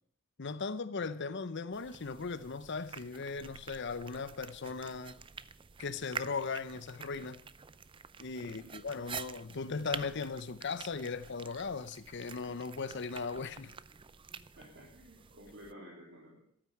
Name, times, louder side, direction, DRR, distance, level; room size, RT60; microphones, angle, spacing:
voice 1, 0.4-5.2 5.8-7.4 8.2-13.7, left 4 dB, 60° left, 0.7 m, -38 dB
sound 1, 1.7-15.7, right 6 dB, 25° right, 0.5 m, -48 dB
voice 2, 8.4-8.9 14.6-16.4, equal, 55° right, 4.0 m, -52 dB
14.0 x 8.9 x 8.5 m
head